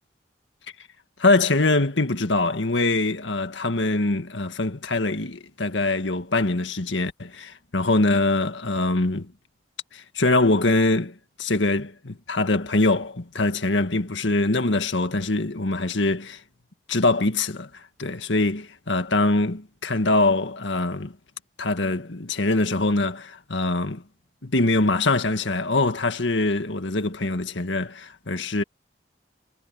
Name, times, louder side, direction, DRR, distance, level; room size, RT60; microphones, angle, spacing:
voice 1, 1.2-9.3 9.9-16.4 16.9-17.7 18.0-21.1 21.6-24.0 24.4-28.6, left 2 dB, 85° left, 1.8 m, -23 dB
head